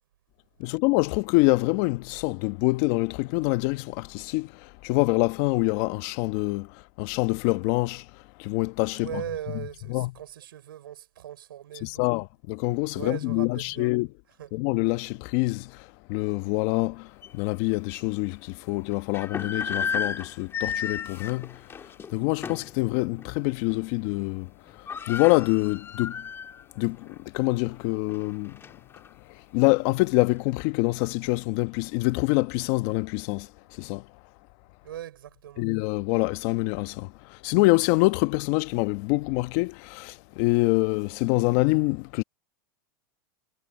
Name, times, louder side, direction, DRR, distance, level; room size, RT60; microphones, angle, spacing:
voice 1, 0.6-9.2 9.9-10.1 11.8-14.1 14.5-26.3 26.7-28.6 29.3-34.1 35.6-42.2, left 24 dB, 55° left, 1.1 m, -26 dB
voice 2, 8.9-12.1 12.9-13.9 14.4-14.5 34.8-35.7, right 12 dB, 85° right, 5.9 m, -39 dB
sound 1, 17.2-17.3 17.9-18.0 18.9-22.8 23.2-23.4 23.7-24.1 24.4-24.5 24.6-26.6 27.0-27.1 27.7-29.1, left 7 dB, 20° left, 3.0 m, -34 dB
supercardioid pair, 120°, 11 cm